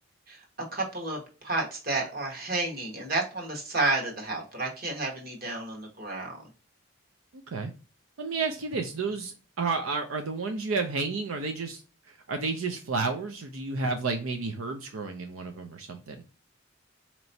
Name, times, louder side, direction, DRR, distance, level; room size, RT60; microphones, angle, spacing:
voice 1, 0.7-6.4, right 2 dB, 45° right, -1 dB, 1.4 m, -31 dB
voice 2, 8.2-11.8 12.3-16.2, right 4 dB, 85° right, 5 dB, 0.5 m, -31 dB
4.3 x 2.9 x 2.7 m, 0.36 s
head